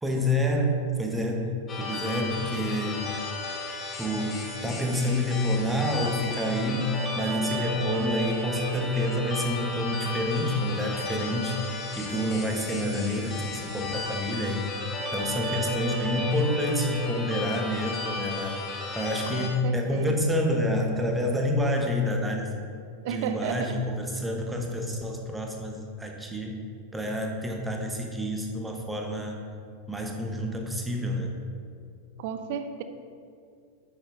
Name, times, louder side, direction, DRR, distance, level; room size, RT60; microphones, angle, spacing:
voice 1, 0.0-3.2 4.0-11.6 12.0-14.6 15.1-18.6 18.9-22.5 23.1-26.6 26.9-29.4 29.9-31.4, left 1 dB, 5° right, 2 dB, 1.0 m, -28 dB
sound 1, 1.7-19.5, left 2 dB, 25° left, 1.2 m, -34 dB
voice 2, 19.3-20.2 23.0-23.8 32.2-32.8, right 7 dB, 50° right, 9 dB, 0.6 m, -33 dB
10.0 x 7.6 x 2.6 m, 2.3 s
figure-of-eight pair, 90°, 0 cm